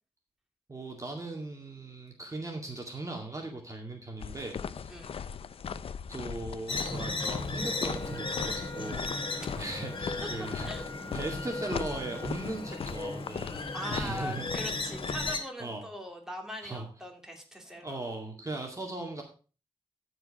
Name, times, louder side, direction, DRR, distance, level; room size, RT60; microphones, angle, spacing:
voice 1, 0.7-5.0 6.1-9.2 9.6-10.9 11.1-13.6 13.9-14.4 15.6-15.9 16.6-16.9 17.7-19.2, right 2 dB, 35° right, 1 dB, 2.2 m, -38 dB
sound 1, 4.2-15.3, left 7 dB, 90° left, 0.5 m, -39 dB
sound 2, 6.7-15.4, left 3 dB, 65° left, 2.3 m, -36 dB
Wind instrument woodwind instrument, 7.5-13.1, left 1 dB, 30° left, 1.5 m, -46 dB
voice 2, 13.7-18.0, equal, 5° right, 1 dB, 2.7 m, -41 dB
14.0 x 4.9 x 4.8 m, 0.36 s
wide cardioid pair, 80°, 9 cm